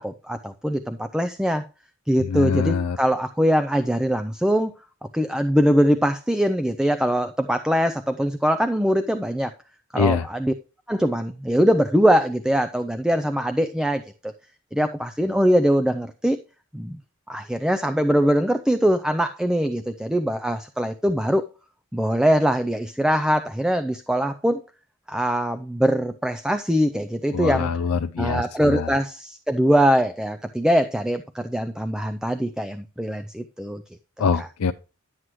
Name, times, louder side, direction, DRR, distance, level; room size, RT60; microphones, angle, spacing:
voice 1, 0.0-1.6 2.1-4.7 5.1-9.5 9.9-10.5 10.9-14.3 14.7-16.4 16.7-17.0 17.3-21.5 21.9-24.6 25.1-27.7 28.2-33.8 34.4-34.5, equal, 5° right, 0.4 m, -22 dB
voice 2, 2.2-3.0 10.0-10.3 27.3-28.9 34.2-34.7, left 5 dB, 85° left, 0.5 m, -24 dB
11.0 x 7.6 x 3.1 m
head